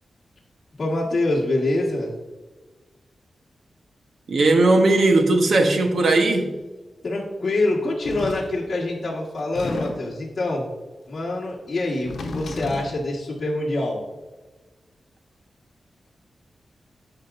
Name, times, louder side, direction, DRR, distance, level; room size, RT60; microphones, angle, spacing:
voice 1, 0.8-2.1 7.0-10.7 11.1-14.0, left 2 dB, 40° left, -4 dB, 1.5 m, -25 dB
voice 2, 4.3-6.5, right 2 dB, 65° right, 4 dB, 1.1 m, -18 dB
sound 1, 8.0-8.6 9.4-10.2 11.9-13.0, left 3 dB, 90° left, 0.9 m, -33 dB
13.0 x 5.0 x 2.6 m, 1.2 s
wide cardioid pair, 170°, 0 cm